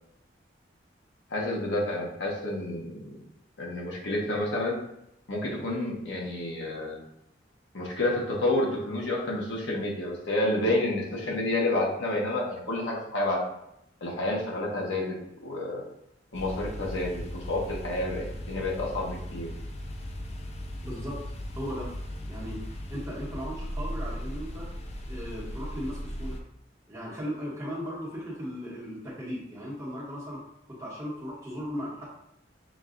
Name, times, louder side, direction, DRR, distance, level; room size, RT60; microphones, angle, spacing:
voice 1, 1.3-3.2 3.6-4.8 5.3-7.0 7.7-13.4 14.0-15.2 15.4-15.8 16.3-19.5, left 1 dB, 85° left, -2 dB, 1.0 m, -29 dB
sound 1, 16.3-26.4, equal, 35° left, 0.4 m, -37 dB
voice 2, 20.8-21.2 21.5-21.9 22.2-24.7 25.1-26.4 26.9-32.1, equal, 15° right, -6 dB, 1.1 m, -37 dB
6.0 x 2.4 x 2.5 m, 0.80 s
head